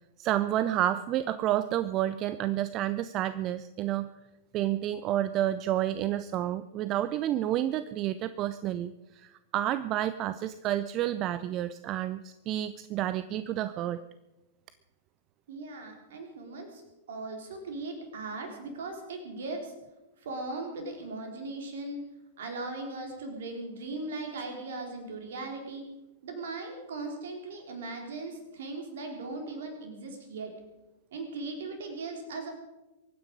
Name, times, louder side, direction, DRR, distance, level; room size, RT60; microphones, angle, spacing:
voice 1, 0.2-4.1 4.5-14.0, right 12 dB, 35° right, 14 dB, 0.5 m, -30 dB
voice 2, 15.5-16.8 17.1-19.7 20.2-22.0 22.4-25.9 26.2-30.5 31.1-32.5, right 3 dB, 60° right, 3 dB, 3.8 m, -38 dB
23.5 x 9.6 x 5.3 m, 1.1 s
figure-of-eight pair, 100°, 0 cm